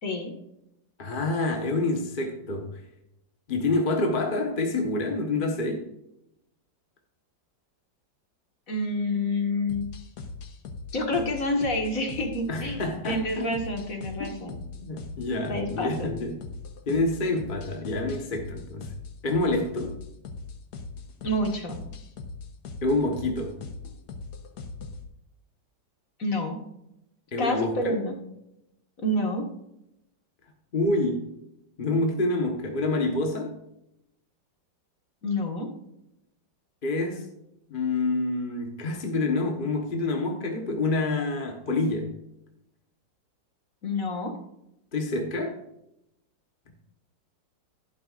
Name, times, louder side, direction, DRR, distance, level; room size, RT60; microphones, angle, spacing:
voice 1, 0.0-0.3 8.7-9.8 10.9-14.6 15.5-16.1 21.2-21.8 26.2-26.6 27.4-28.2 29.0-29.4 35.2-35.7 43.8-44.3, left 1 dB, 45° left, 2 dB, 2.1 m, -28 dB
voice 2, 1.0-2.8 3.5-5.9 12.5-13.5 14.2-14.3 14.8-16.4 16.9-18.9 19.2-19.9 22.8-23.6 27.3-28.0 30.7-31.3 31.8-33.5 36.8-37.3 37.7-42.1 44.9-45.6, left 2 dB, 30° left, 2 dB, 1.3 m, -27 dB
sound 1, 9.7-25.1, left 4 dB, 60° left, 1.6 m, -40 dB
11.5 x 11.5 x 2.5 m, 0.83 s
omnidirectional pair, 2.1 m